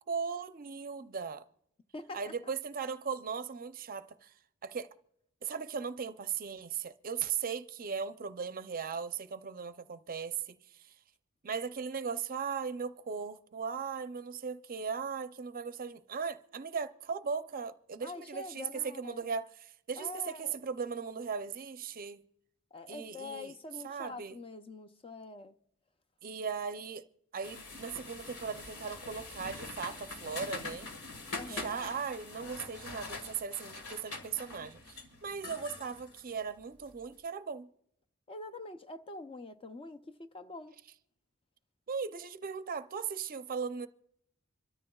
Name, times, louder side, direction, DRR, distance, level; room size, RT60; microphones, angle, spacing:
voice 1, 0.1-1.4 2.1-4.3 4.6-4.9 5.4-10.9 11.4-22.2 22.9-23.5 23.8-24.4 26.2-27.0 27.3-30.9 31.5-37.7 41.9-43.9, right 6 dB, 40° right, 0.5 m, -38 dB
voice 2, 18.0-19.2 20.0-20.6 22.7-25.5 31.3-31.8 38.3-40.7, left 3 dB, 25° left, 0.5 m, -45 dB
sound 1, 27.4-37.0, left 3 dB, 85° left, 1.7 m, -44 dB
26.0 x 13.5 x 2.3 m
head